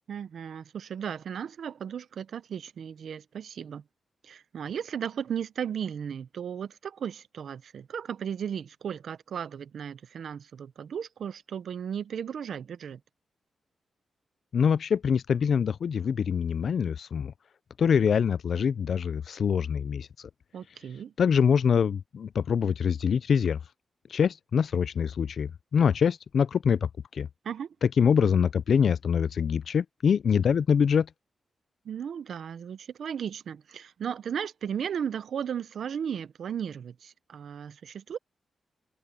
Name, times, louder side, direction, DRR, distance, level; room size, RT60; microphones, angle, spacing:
voice 1, 0.1-3.8 4.2-13.0 20.5-21.1 27.4-27.7 31.8-38.2, right 8 dB, 75° right, 0.9 m, -35 dB
voice 2, 14.5-17.3 17.8-20.1 21.2-23.6 24.1-27.3 27.8-31.1, left 7 dB, 65° left, 0.4 m, -24 dB
cardioid pair, 90°, 0 cm